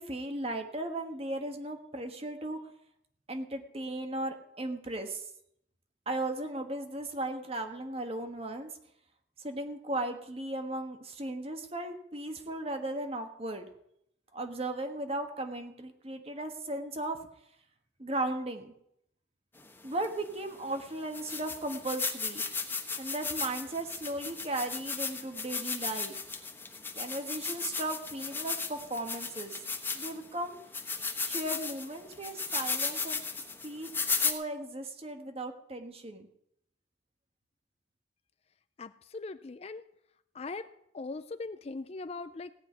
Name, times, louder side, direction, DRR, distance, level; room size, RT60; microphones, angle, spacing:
voice 1, 0.0-2.6 3.3-5.3 6.1-8.7 9.4-13.7 14.3-17.2 18.0-18.7 19.8-22.4 23.0-26.1 26.9-29.6 29.9-30.6 31.2-33.2 33.6-33.9 34.2-36.3, right 1 dB, 30° right, 6 dB, 1.4 m, -36 dB
sound 1, 20.0-20.1 20.7-20.8 21.1-30.3 30.7-34.3, left 4 dB, 10° left, 1.1 m, -35 dB
voice 2, 38.8-39.8 40.3-40.7 40.9-42.5, left 3 dB, 35° left, 13 dB, 0.4 m, -40 dB
17.0 x 5.6 x 9.4 m, 0.76 s
head